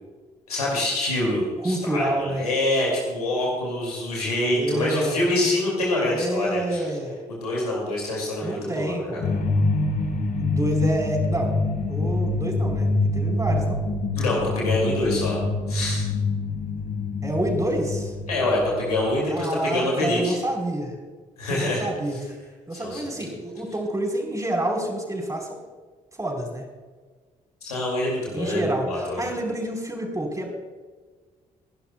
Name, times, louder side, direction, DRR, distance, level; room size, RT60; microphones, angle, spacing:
voice 1, 0.5-6.8 7.3-9.2 14.2-15.4 15.7-16.1 18.3-20.4 21.4-21.9 22.7-23.3 27.6-29.3, left 1 dB, 85° left, -3 dB, 2.4 m, -25 dB
voice 2, 1.6-2.4 4.5-5.2 6.0-7.2 8.4-9.2 10.4-11.6 11.9-13.8 17.2-18.2 19.3-20.9 21.5-22.3 22.7-25.6 26.2-26.6 28.3-30.6, right 1 dB, 15° right, 0 dB, 4.2 m, -28 dB
sound 1, 9.2-19.4, left 2 dB, 45° left, 1.3 m, -26 dB
27.5 x 11.5 x 2.3 m, 1.4 s
figure-of-eight pair, 40°, 19 cm